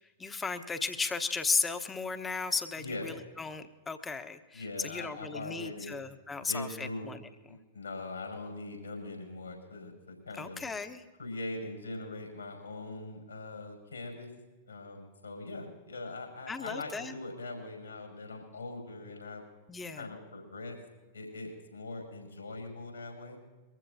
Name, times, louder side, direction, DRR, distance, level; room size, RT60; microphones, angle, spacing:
voice 1, 0.2-7.2 10.4-11.0 16.5-17.2 19.7-20.1, left 4 dB, 15° left, 9 dB, 1.0 m, -35 dB
voice 2, 2.8-3.1 4.5-6.0 6.4-7.1 7.5-10.6 11.2-14.3 14.7-19.4 20.0-20.8 21.1-23.4, left 2 dB, 80° left, 1 dB, 5.3 m, -41 dB
23.0 x 15.0 x 2.7 m, 1.2 s
figure-of-eight pair, 95°, 0 cm